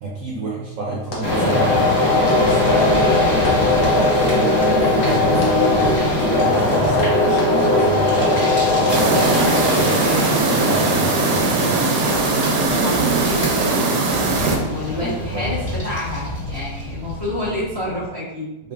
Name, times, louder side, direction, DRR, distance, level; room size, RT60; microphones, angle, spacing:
voice 1, 0.0-1.9 2.3-4.9 5.2-9.3 9.7-11.8 14.8-15.5 18.6-18.7, right 2 dB, 65° right, -4 dB, 0.8 m, -28 dB
Run, 0.9-12.8, left 1 dB, 75° left, 1.5 m, -35 dB
sound 1, 1.2-18.0, left 2 dB, 40° left, 1.7 m, -20 dB
sound 2, 8.9-14.6, right 4 dB, 80° right, 1.2 m, -20 dB
voice 2, 12.8-18.5, left 1 dB, 20° left, -7 dB, 0.8 m, -29 dB
4.9 x 2.4 x 2.4 m, 0.97 s
omnidirectional pair, 1.8 m